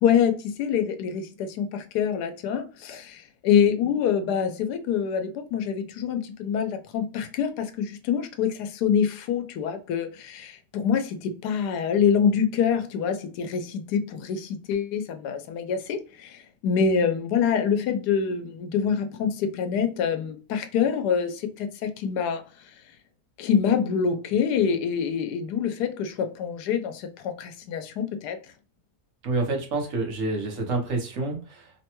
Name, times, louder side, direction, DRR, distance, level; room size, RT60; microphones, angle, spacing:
voice 1, 0.0-22.4 23.4-28.4, left 7 dB, 90° left, 1.2 m, -25 dB
voice 2, 29.2-31.8, right 3 dB, 60° right, 1.1 m, -28 dB
3.2 x 2.2 x 2.9 m
omnidirectional pair, 1.7 m